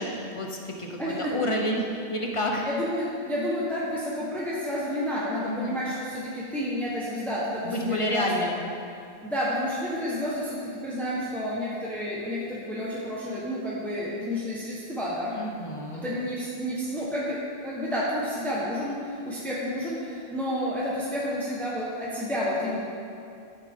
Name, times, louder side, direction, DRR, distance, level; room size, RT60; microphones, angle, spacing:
voice 1, 0.0-2.7 5.4-5.8 7.6-8.6 15.3-16.2, equal, 35° left, 0 dB, 0.9 m, -30 dB
voice 2, 1.0-1.3 2.6-8.5 9.2-15.4 15.9-22.8, equal, ahead, -7 dB, 1.2 m, -30 dB
12.0 x 7.4 x 3.7 m, 2.5 s
omnidirectional pair, 1.1 m